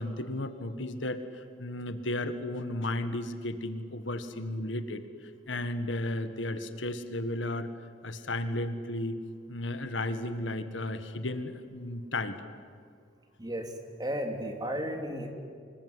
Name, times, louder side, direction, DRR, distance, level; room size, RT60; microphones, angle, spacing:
voice 1, 0.0-7.7 8.0-9.2 9.5-12.4, left 1 dB, 80° left, 9 dB, 1.8 m, -34 dB
voice 2, 13.4-15.3, equal, 20° right, 4 dB, 3.0 m, -34 dB
26.0 x 20.5 x 9.7 m, 2.3 s
head